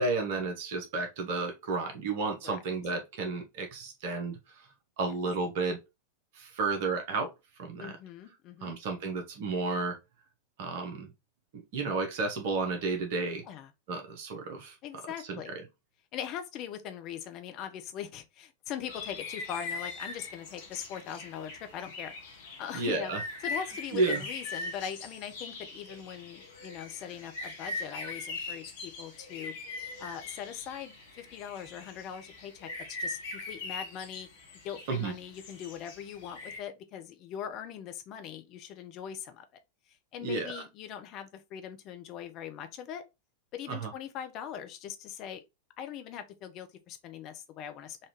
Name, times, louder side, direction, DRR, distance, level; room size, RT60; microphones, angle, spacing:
voice 1, 0.0-4.4 5.0-5.8 6.3-7.3 7.6-8.0 8.6-10.0 10.6-11.1 11.5-13.4 13.9-14.8 15.3-15.4 22.7-23.2 23.9-24.2 34.9-35.1 40.2-40.6 43.7-43.9, right 3 dB, 50° right, 0.9 m, -32 dB
voice 2, 7.8-8.7 13.5-13.7 14.8-15.5 16.1-22.1 22.6-23.1 23.4-29.5 30.0-32.7 33.0-33.2 33.5-34.3 34.6-39.4 40.1-43.0 43.5-45.4 45.8-48.0, left 9 dB, 40° left, 0.7 m, -41 dB
sound 1, 18.9-36.6, left 3 dB, 55° left, 1.1 m, -41 dB
4.1 x 2.5 x 3.0 m
figure-of-eight pair, 90°, 0 cm